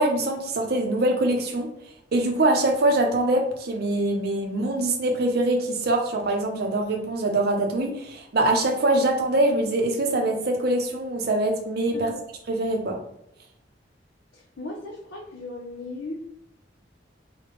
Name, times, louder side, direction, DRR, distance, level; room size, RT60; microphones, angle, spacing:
voice 1, 0.0-1.7 2.1-12.1 12.5-13.0, right 1 dB, 60° right, 3 dB, 0.6 m, -23 dB
voice 2, 14.3-16.2, left 2 dB, 85° left, -2 dB, 0.5 m, -37 dB
3.3 x 2.1 x 3.0 m, 0.77 s
head